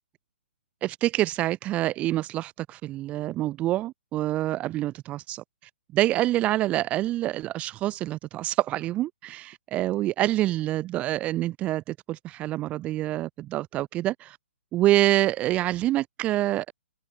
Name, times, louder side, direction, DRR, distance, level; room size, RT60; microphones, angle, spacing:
voice 1, 0.8-5.4 5.9-14.4 14.7-16.7, right 15 dB, 20° right, 2.1 m, -26 dB
figure-of-eight pair, 125°, 7 cm